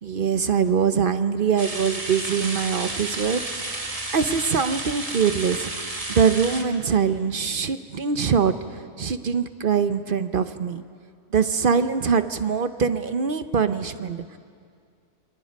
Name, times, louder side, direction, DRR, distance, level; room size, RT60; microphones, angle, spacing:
voice 1, 0.0-5.7 6.1-10.8 11.3-14.4, right 6 dB, 50° right, 11 dB, 0.8 m, -23 dB
sound 1, 1.6-6.6, right 2 dB, 25° right, 1.8 m, -32 dB
28.5 x 25.5 x 5.3 m, 2.2 s
omnidirectional pair, 1.4 m